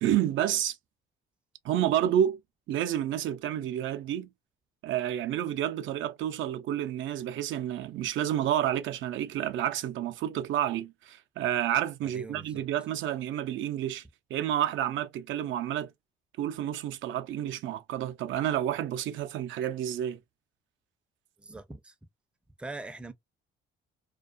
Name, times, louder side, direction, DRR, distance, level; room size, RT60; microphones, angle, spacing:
voice 1, 0.0-0.8 1.6-2.4 2.7-4.3 4.8-14.0 14.3-15.9 16.4-20.2, right 11 dB, 75° right, 0.4 m, -29 dB
voice 2, 12.1-12.6 21.4-21.9 22.6-23.1, right 2 dB, 5° right, 0.4 m, -42 dB
2.3 x 2.2 x 2.4 m
cardioid pair, 90°, 20 cm